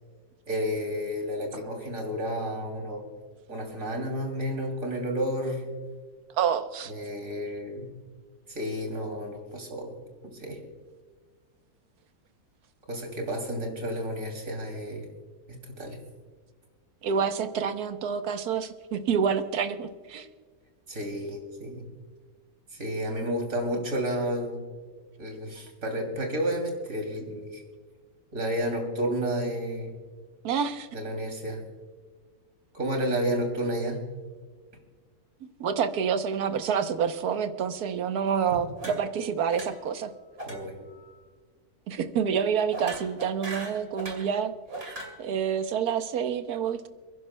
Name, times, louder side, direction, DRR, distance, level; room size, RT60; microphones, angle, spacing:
voice 1, 0.5-3.0 3.5-5.7 6.9-7.9 8.5-9.9 10.2-10.6 12.9-15.0 15.5-16.0 20.9-21.9 22.7-24.6 25.2-27.6 28.3-29.9 30.9-31.6 32.7-34.0 38.5-38.6 40.5-40.7, equal, 60° right, 2 dB, 3.3 m, -31 dB
voice 2, 6.4-6.9 17.0-20.3 30.4-30.9 35.6-40.1 41.9-44.5 45.2-46.9, right 7 dB, 80° right, 9 dB, 1.4 m, -28 dB
sound 1, 38.8-39.2 39.5-39.9 40.4-40.6 40.9-41.2 42.7-44.3 44.7-45.2, right 1 dB, 40° right, 2.7 m, -39 dB
30.0 x 11.0 x 2.2 m, 1.5 s
omnidirectional pair, 1.6 m